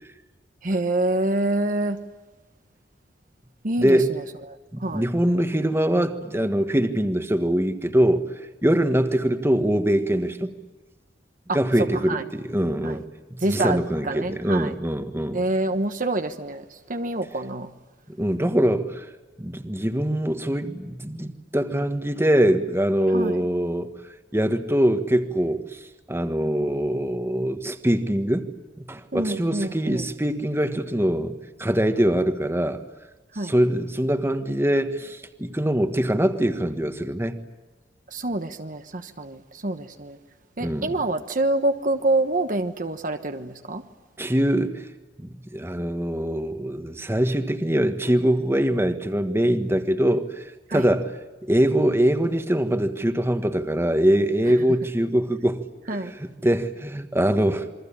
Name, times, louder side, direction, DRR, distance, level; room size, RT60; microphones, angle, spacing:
voice 1, 0.6-2.0 3.6-5.1 11.5-11.6 12.1-12.2 12.8-13.0 13.4-13.8 14.0-14.7 15.3-17.7 23.1-23.4 29.1-30.0 33.3-33.5 38.1-40.2 40.6-43.8 50.7-50.9 55.9-56.1, right 2 dB, 50° right, 7 dB, 1.2 m, -26 dB
voice 2, 3.8-4.1 4.7-8.3 8.6-10.5 11.5-13.0 13.3-15.4 18.1-19.0 19.4-23.9 24.3-25.8 26.1-28.5 28.8-32.8 33.4-37.4 40.6-41.0 44.2-44.9 45.2-51.1 51.4-55.6 55.9-57.7, right 1 dB, 15° right, 8 dB, 1.6 m, -23 dB
28.0 x 23.0 x 8.8 m, 1.2 s
head